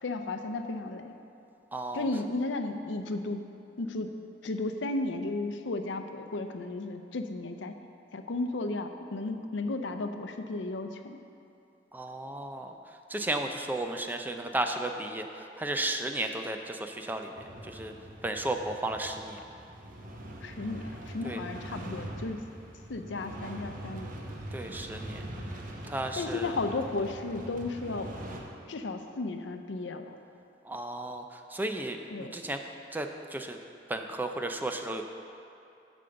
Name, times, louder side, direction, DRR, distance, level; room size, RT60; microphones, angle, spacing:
voice 1, 0.0-1.1 1.9-3.4 3.8-4.1 4.4-7.7 8.1-11.2 20.4-22.4 22.9-24.1 26.2-28.1 28.7-30.2 32.1-32.3, left 2 dB, 85° left, 7 dB, 0.6 m, -34 dB
voice 2, 1.7-2.1 11.9-12.8 13.1-17.3 17.6-17.9 18.2-19.4 21.2-21.4 24.5-25.2 25.9-26.5 30.6-32.6 32.9-33.6 33.9-35.0, right 1 dB, 10° right, 5 dB, 0.4 m, -34 dB
sound 1, 17.4-28.4, right 1 dB, 50° right, 0.9 m, -42 dB
8.6 x 5.2 x 6.8 m, 2.7 s
head